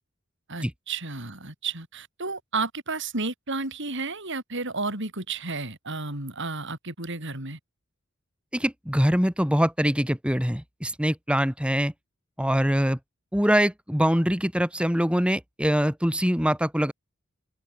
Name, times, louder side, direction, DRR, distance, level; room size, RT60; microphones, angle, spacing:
voice 1, 0.5-7.6, right 3 dB, 60° right, 6.6 m, -32 dB
voice 2, 8.5-11.9 12.4-13.0 13.3-16.9, equal, 5° right, 3.2 m, -23 dB
head